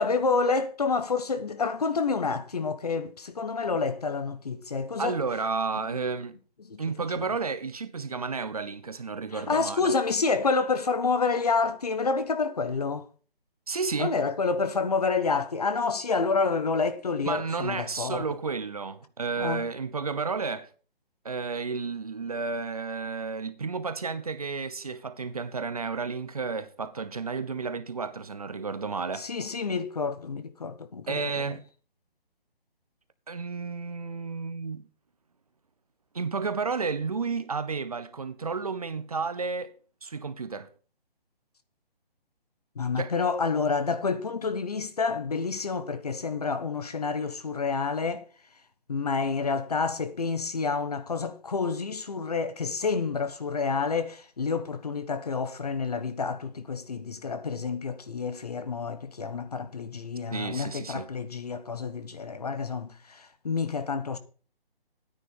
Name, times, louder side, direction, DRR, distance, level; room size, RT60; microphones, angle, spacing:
voice 1, 0.0-5.2 6.7-6.8 7.2-7.3 9.3-13.0 14.0-18.3 19.4-19.6 29.2-31.2 42.8-48.3 48.9-64.2, left 4 dB, 40° left, 1.0 m, -28 dB
voice 2, 5.0-6.4 6.8-10.0 13.7-14.2 17.3-20.7 21.2-29.3 31.1-31.7 33.3-34.9 36.1-39.7 40.0-40.7 43.0-43.1 60.3-61.1, right 4 dB, 40° right, 0.8 m, -32 dB
9.8 x 9.7 x 5.4 m
hypercardioid pair, 175°, 30 cm